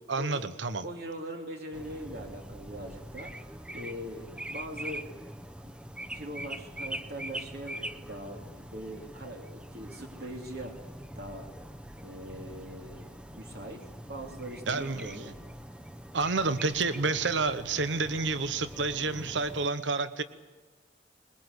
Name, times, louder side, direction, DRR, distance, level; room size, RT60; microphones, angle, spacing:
voice 1, 0.1-0.8 14.7-15.1 16.1-20.2, right 3 dB, 85° right, 12 dB, 1.0 m, -29 dB
voice 2, 0.8-5.1 5.6-5.8 6.1-11.5 12.0-15.3, right 1 dB, 60° right, 2 dB, 2.6 m, -42 dB
sound 1, 1.7-19.7, right 1 dB, 5° right, 0.8 m, -43 dB
22.5 x 21.5 x 8.1 m, 1.3 s
head